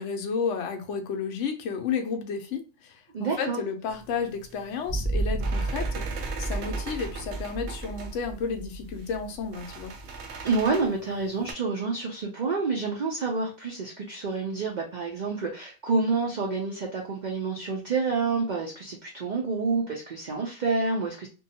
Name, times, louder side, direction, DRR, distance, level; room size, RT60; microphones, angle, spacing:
voice 1, 0.0-9.9, left 5 dB, 70° left, 0.8 m, -32 dB
voice 2, 3.1-3.6 10.4-21.3, right 4 dB, 90° right, 0.4 m, -28 dB
sound 1, 3.9-11.5, right 5 dB, 65° right, 0.7 m, -41 dB
sound 2, 4.9-10.1, right 2 dB, 15° right, 0.8 m, -32 dB
2.6 x 2.2 x 2.7 m
omnidirectional pair, 1.4 m